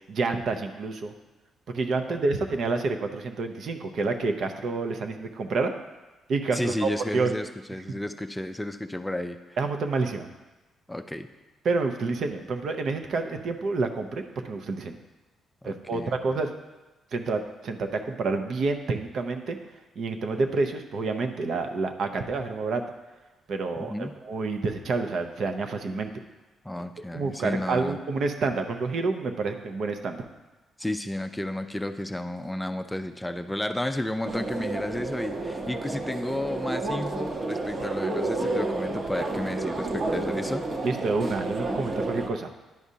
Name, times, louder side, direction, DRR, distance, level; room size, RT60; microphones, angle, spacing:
voice 1, 0.1-1.1 1.7-5.7 6.3-7.3 9.6-10.3 11.6-14.9 15.6-16.5 17.1-19.6 20.0-22.8 23.5-26.1 27.1-30.2 40.8-42.5, right 3 dB, 60° right, 6 dB, 0.6 m, -28 dB
voice 2, 6.5-9.6 10.9-11.3 15.6-16.2 23.9-24.2 26.6-28.0 30.8-40.7, left 1 dB, 10° left, 8 dB, 0.4 m, -32 dB
sound 1, 34.2-42.3, right 2 dB, 40° right, 0.9 m, -30 dB
10.5 x 5.0 x 2.7 m, 1.1 s
cardioid pair, 90°, 0 cm